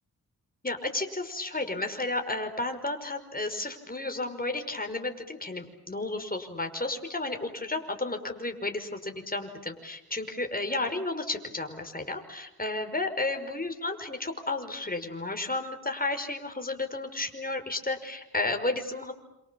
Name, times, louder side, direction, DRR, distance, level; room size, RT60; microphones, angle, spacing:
voice 1, 0.6-19.1, left 2 dB, 25° left, 5 dB, 5.4 m, -32 dB
29.0 x 27.5 x 7.2 m, 0.89 s
cardioid pair, 50°, 38 cm